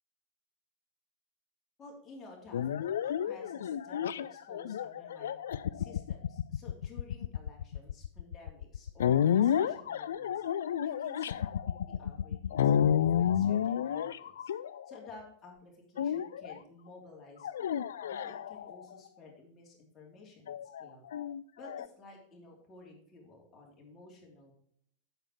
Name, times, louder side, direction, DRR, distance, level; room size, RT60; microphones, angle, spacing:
voice 1, 1.8-14.5 14.8-21.0 21.5-24.5, left 3 dB, 25° left, -2 dB, 3.0 m, -53 dB
sound 1, 2.5-15.2 16.0-16.6 17.4-18.9 20.5-21.9, left 9 dB, 60° left, 0.3 m, -31 dB
8.8 x 6.8 x 4.3 m, 0.67 s
figure-of-eight pair, 90°, 0 cm